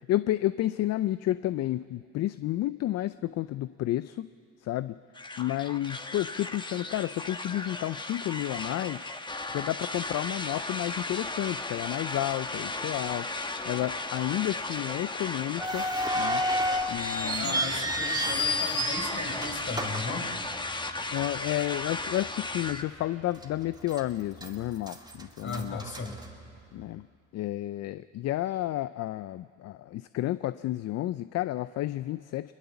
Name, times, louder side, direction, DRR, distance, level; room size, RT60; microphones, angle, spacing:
voice 1, 0.1-4.3 4.6-5.0 5.4-9.1 9.5-13.3 13.6-15.9 16.1-16.5 16.9-17.9 21.1-25.8 26.7-27.1 27.3-32.5, left 14 dB, 55° left, 15 dB, 0.5 m, -31 dB
sound 1, 5.1-22.8, left 2 dB, 15° left, 1.2 m, -35 dB
sound 2, 15.6-20.9 21.2-21.3 22.0-22.3 22.7-22.8 23.4-24.0 24.4-26.8, equal, 15° right, 2.3 m, -31 dB
voice 2, 17.2-20.2 25.4-26.2, left 4 dB, 40° left, 2 dB, 4.9 m, -36 dB
21.5 x 21.0 x 7.1 m, 2.3 s
supercardioid pair, 75°, 31 cm